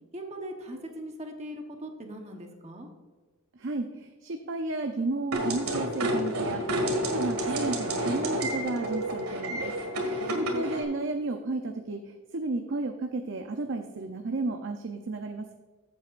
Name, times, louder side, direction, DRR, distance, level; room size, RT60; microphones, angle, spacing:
voice 1, 0.1-2.9 10.2-10.7, right 1 dB, 30° right, 2 dB, 1.1 m, -40 dB
voice 2, 3.5-9.8 10.0-15.5, right 2 dB, 55° right, 5 dB, 0.6 m, -33 dB
sound 1, 5.3-10.8, right 1 dB, 85° right, 1.8 m, -30 dB
14.5 x 7.5 x 2.5 m, 1.4 s
head